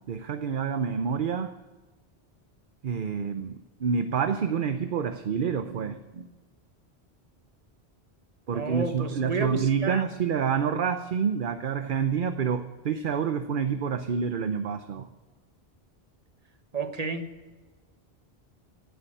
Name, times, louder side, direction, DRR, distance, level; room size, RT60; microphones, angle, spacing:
voice 1, 0.1-1.6 2.8-6.3 8.5-15.1, right 6 dB, 55° right, 0.9 m, -28 dB
voice 2, 8.5-10.0 16.7-17.2, right 4 dB, 35° right, 1.3 m, -31 dB
16.0 x 8.5 x 8.9 m
omnidirectional pair, 1.1 m